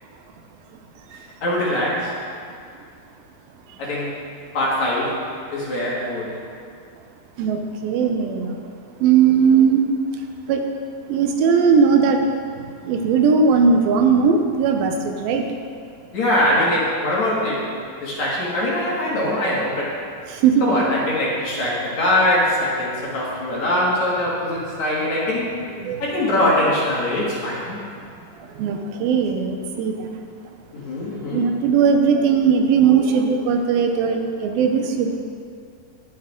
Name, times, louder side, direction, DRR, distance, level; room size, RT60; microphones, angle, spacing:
voice 1, 1.4-2.1 3.8-4.1 4.5-5.2 5.5-6.3 16.1-17.7 18.0-20.0 20.6-25.5 26.0-27.8 30.7-31.5, left 1 dB, 55° left, -5 dB, 3.3 m, -22 dB
voice 2, 7.4-8.6 9.0-9.9 10.5-10.7 11.1-12.2 12.8-15.5 20.3-20.7 25.8-26.0 28.5-30.1 31.3-35.2, right 6 dB, 80° right, 4 dB, 2.6 m, -18 dB
21.0 x 7.4 x 3.7 m, 2.3 s
omnidirectional pair, 4.3 m